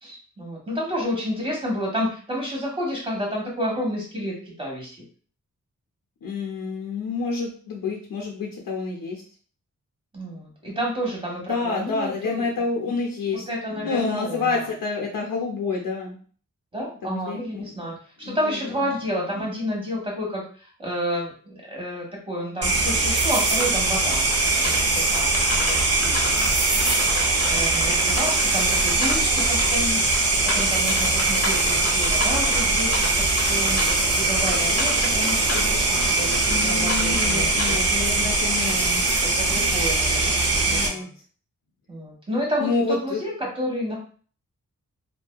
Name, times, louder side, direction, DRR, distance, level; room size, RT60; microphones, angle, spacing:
voice 1, 0.0-5.0 10.1-12.5 13.5-14.7 16.7-24.3 24.5-26.5 27.4-30.0 30.4-33.8 34.1-37.8 39.2-41.1 41.9-44.0, equal, 15° right, -3 dB, 1.2 m, -30 dB
voice 2, 6.2-9.2 11.5-13.4 13.8-16.2 17.0-17.6 18.2-18.6 36.5-39.0 40.7-41.1 42.6-43.2, left 4 dB, 80° left, -1 dB, 0.6 m, -28 dB
sound 1, 22.6-40.9, right 2 dB, 50° right, 0.5 m, -21 dB
sound 2, 23.6-35.7 36.2-37.9, left 2 dB, 45° left, 0.7 m, -32 dB
sound 3, 33.5-34.9 35.2-36.7, right 1 dB, ahead, 0.6 m, -38 dB
2.6 x 2.2 x 2.2 m, 0.43 s
wide cardioid pair, 75°, 33 cm